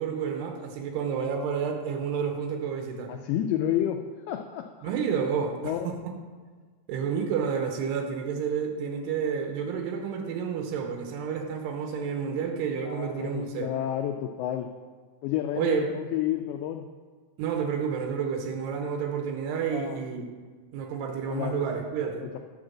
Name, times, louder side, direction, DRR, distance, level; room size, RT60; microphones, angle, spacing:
voice 1, 0.0-3.1 4.8-6.1 6.9-13.7 15.5-15.9 17.4-20.2 20.7-22.2, right 6 dB, 80° right, 3 dB, 2.8 m, -30 dB
voice 2, 3.1-4.0 4.3-4.9 5.6-5.9 12.9-14.7 15.2-16.9 19.7-20.0 21.3-21.6 22.2-22.4, left 11 dB, 85° left, 5 dB, 2.2 m, -30 dB
10.5 x 3.8 x 7.3 m, 1.5 s
omnidirectional pair, 5.0 m